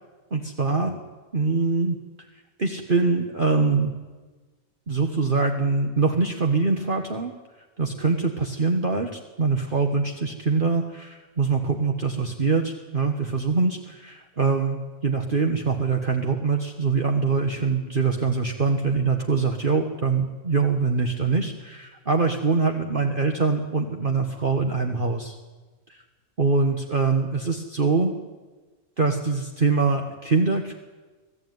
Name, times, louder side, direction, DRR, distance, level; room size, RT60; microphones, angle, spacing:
voice 1, 0.3-1.0 1.3-2.0 2.6-3.9 4.9-7.3 7.8-25.3 25.9-26.0 26.4-28.1 29.0-30.7, right 4 dB, 40° right, 3 dB, 1.6 m, -23 dB
26.0 x 16.0 x 9.4 m, 1.3 s
omnidirectional pair, 1.4 m